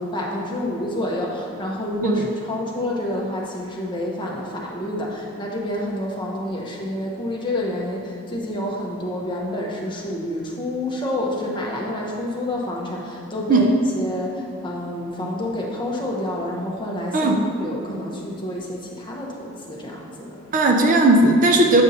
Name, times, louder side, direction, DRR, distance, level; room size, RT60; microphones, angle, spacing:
voice 1, 0.0-20.4, left 1 dB, 20° left, -2 dB, 0.8 m, -28 dB
voice 2, 20.5-21.8, right 2 dB, 40° right, 2 dB, 0.4 m, -16 dB
8.5 x 5.3 x 2.7 m, 2.6 s
head